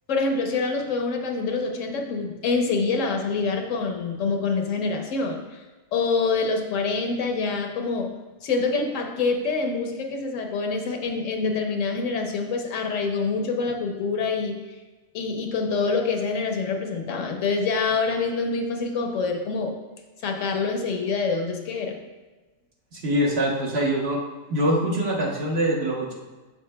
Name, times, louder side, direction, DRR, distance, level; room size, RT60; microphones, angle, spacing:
voice 1, 0.1-5.6 5.9-8.1 8.4-14.6 15.1-19.7 20.2-22.0, left 4 dB, 75° left, 3 dB, 1.1 m, -26 dB
voice 2, 22.9-24.2 24.5-26.1, right 1 dB, 55° right, -2 dB, 1.3 m, -24 dB
7.0 x 6.4 x 2.2 m, 1.2 s
omnidirectional pair, 1.3 m